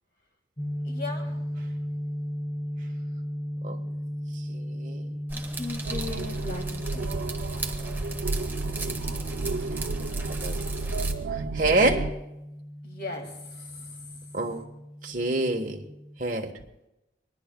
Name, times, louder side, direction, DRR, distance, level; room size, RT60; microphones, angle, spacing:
sound 1, 0.6-16.2, equal, 30° left, 2.1 m, -36 dB
voice 1, 0.8-1.4 5.3-7.1 12.8-14.0, left 3 dB, 55° left, 3 dB, 2.1 m, -38 dB
voice 2, 4.5-5.2 9.7-9.8 10.3-10.6 11.3-12.1 14.3-14.7 15.0-15.8 16.2-16.5, right 2 dB, 45° right, 2 dB, 1.3 m, -27 dB
sound 2, 5.3-11.1, right 3 dB, 10° right, 1.0 m, -38 dB
sound 3, 5.9-12.1, right 3 dB, 90° right, 0.5 m, -32 dB
25.0 x 21.0 x 2.3 m, 0.92 s
head